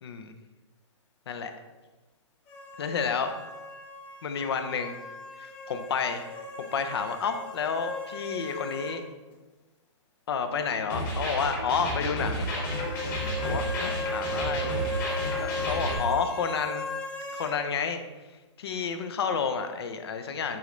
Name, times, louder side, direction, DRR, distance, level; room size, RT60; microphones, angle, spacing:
voice 1, 0.0-0.3 1.3-1.5 2.8-3.3 4.2-5.0 5.4-6.2 6.6-9.0 10.3-12.5 13.4-14.8 15.4-16.9 17.3-18.0 18.6-20.6, left 6 dB, 55° left, 7 dB, 0.7 m, -30 dB
sound 1, 2.5-9.0 9.3-9.4 12.5-17.6, left 1 dB, 10° left, 0.3 m, -37 dB
sound 2, 10.9-15.9, equal, 40° left, 1.9 m, -31 dB
8.7 x 3.9 x 3.2 m, 1.2 s
hypercardioid pair, 165°, 16 cm